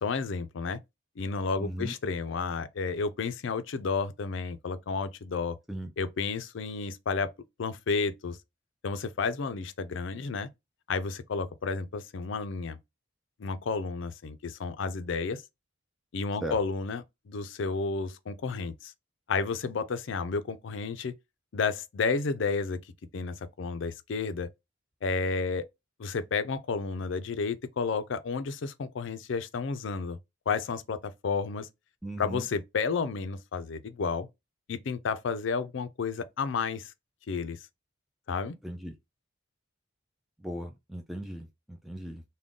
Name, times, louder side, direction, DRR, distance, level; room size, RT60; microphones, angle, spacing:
voice 1, 0.0-0.8 1.2-5.6 6.0-7.3 7.6-8.4 8.8-10.5 10.9-12.8 13.4-15.4 16.1-18.9 19.3-21.1 21.5-22.8 23.1-24.5 25.0-25.7 26.0-30.2 30.5-31.7 32.2-34.3 34.7-36.9 37.3-37.6 38.3-38.5, left 4 dB, 65° left, 0.4 m, -31 dB
voice 2, 1.6-1.9 5.7-5.9 16.4-16.6 32.0-32.5 38.6-38.9 40.4-42.2, right 1 dB, ahead, 0.3 m, -37 dB
3.7 x 2.2 x 3.6 m
head